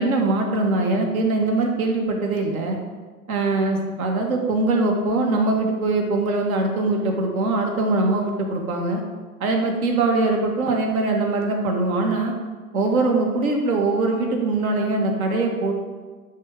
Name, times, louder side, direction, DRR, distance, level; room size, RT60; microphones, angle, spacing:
voice 1, 0.0-2.8 3.3-9.0 9.4-12.3 12.7-15.7, right 2 dB, 70° right, 2 dB, 1.7 m, -22 dB
10.0 x 3.6 x 5.2 m, 1.4 s
hypercardioid pair, 115°, 45 cm